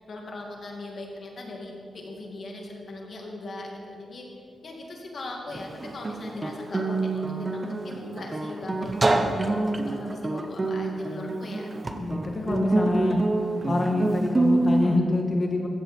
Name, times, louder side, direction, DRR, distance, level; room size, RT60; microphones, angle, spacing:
voice 1, 0.0-4.3 4.6-11.7, left 2 dB, 45° left, 0 dB, 2.4 m, -39 dB
Guitar, 5.5-15.0, right 2 dB, 20° right, 0.9 m, -26 dB
voice 2, 12.0-13.2 13.7-15.7, left 2 dB, 30° left, 1 dB, 1.5 m, -26 dB
15.0 x 15.0 x 4.5 m, 2.5 s
wide cardioid pair, 170°, 0 cm